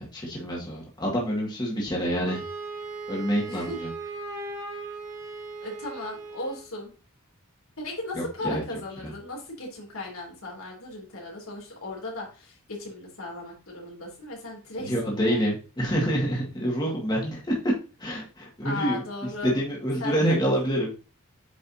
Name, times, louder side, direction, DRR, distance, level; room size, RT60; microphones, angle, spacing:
voice 1, 0.0-2.4 3.1-3.9 8.1-8.6 9.0-9.1 14.8-17.7 18.0-19.0 19.4-21.0, equal, 20° left, -3 dB, 2.1 m, -27 dB
Wind instrument woodwind instrument, 2.2-6.7, right 3 dB, 15° right, 1.7 m, -38 dB
voice 2, 3.5-3.8 5.6-6.9 7.8-15.5 18.6-19.5 20.0-20.5, left 2 dB, 80° left, -1 dB, 3.2 m, -36 dB
8.7 x 5.3 x 2.9 m, 0.34 s
head